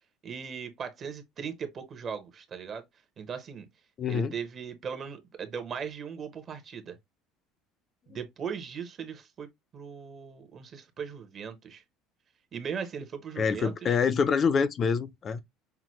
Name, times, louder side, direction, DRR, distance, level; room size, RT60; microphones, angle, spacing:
voice 1, 0.2-2.8 3.2-3.7 4.1-7.0 8.1-9.5 9.7-11.8 12.5-14.0, right 6 dB, 35° right, 0.9 m, -38 dB
voice 2, 4.0-4.3 13.4-15.4, left 6 dB, 30° left, 0.5 m, -26 dB
5.8 x 2.2 x 3.1 m
cardioid pair, 145°, 0 cm